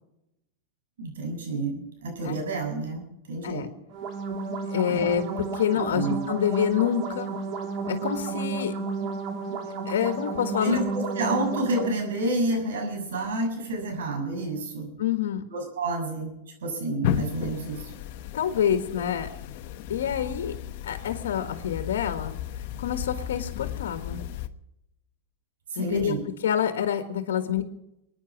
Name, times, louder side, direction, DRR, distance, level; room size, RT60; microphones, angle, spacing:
voice 1, 1.0-3.6 4.9-5.1 5.7-6.2 10.6-14.9 15.5-16.3 16.6-17.9 25.7-26.2, right 2 dB, 90° right, 3 dB, 6.8 m, -29 dB
sound 1, 3.9-11.9, right 4 dB, 40° right, 2.9 m, -32 dB
voice 2, 4.7-7.3 7.9-8.7 9.8-10.8 15.0-15.4 18.3-19.3 19.9-20.5 20.8-22.3 22.8-24.2 25.8-26.1 26.4-27.6, left 9 dB, 90° left, 7 dB, 1.6 m, -27 dB
sound 2, 17.0-24.5, left 11 dB, 55° left, 1.1 m, -34 dB
23.5 x 10.0 x 6.1 m, 0.86 s
supercardioid pair, 140°, 0 cm